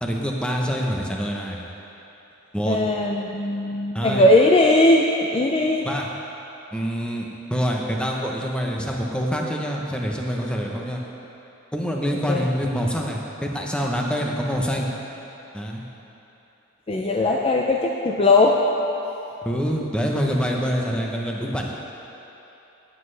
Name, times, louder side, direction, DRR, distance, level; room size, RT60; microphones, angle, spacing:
voice 1, 0.0-1.6 2.5-2.8 3.9-4.3 5.8-6.1 6.7-11.0 11.7-14.9 15.5-15.8 19.4-21.7, equal, 5° left, -1 dB, 0.8 m, -26 dB
voice 2, 2.7-5.9 12.3-12.5 16.9-18.6, left 2 dB, 25° left, 0 dB, 0.4 m, -19 dB
17.5 x 7.6 x 3.3 m, 3.0 s
head